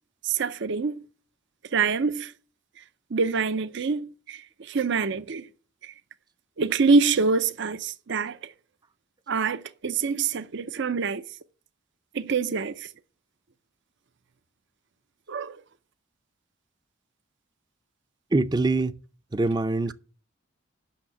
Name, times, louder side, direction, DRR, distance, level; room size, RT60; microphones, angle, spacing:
voice 1, 0.2-1.0 1.7-2.3 2.8-2.9 3.1-5.5 5.8-5.9 6.6-8.5 9.3-11.2 12.1-12.9 15.3-15.6, right 4 dB, 65° right, 0.6 m, -26 dB
voice 2, 18.3-18.9 19.3-19.9, right 2 dB, 20° right, 0.5 m, -23 dB
8.7 x 6.4 x 7.6 m
head